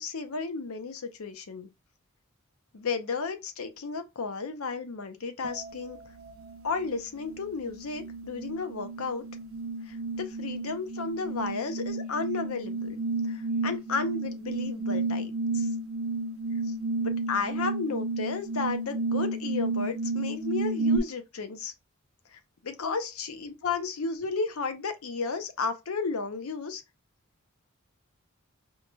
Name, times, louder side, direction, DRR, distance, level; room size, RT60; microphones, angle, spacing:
voice 1, 0.0-1.7 2.7-6.0 6.6-9.2 10.2-13.0 13.3-13.4 13.6-15.7 17.0-21.7 22.6-26.8, left 4 dB, 85° left, 0.7 m, -33 dB
sound 1, 5.4-5.8 6.2-21.0, right 3 dB, 70° right, 0.6 m, -32 dB
4.6 x 2.6 x 2.2 m
head